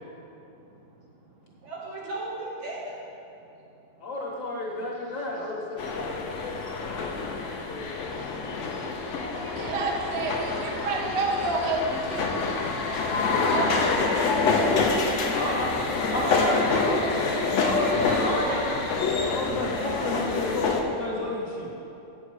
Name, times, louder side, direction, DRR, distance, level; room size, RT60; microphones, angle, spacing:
voice 1, 0.6-3.0 9.0-11.2 15.9-18.6, right 2 dB, 90° right, -5 dB, 2.5 m, -37 dB
voice 2, 4.0-6.6 6.9-8.1 9.5-9.6 15.1-17.0 17.6-18.8 19.3-21.7, left 1 dB, 45° left, -3 dB, 1.6 m, -32 dB
sound 1, 5.8-20.8, left 4 dB, 60° left, 0.7 m, -27 dB
voice 3, 9.5-12.4 13.1-15.3, right 3 dB, 45° right, 1 dB, 0.8 m, -31 dB
8.5 x 7.1 x 4.8 m, 2.9 s
omnidirectional pair, 2.1 m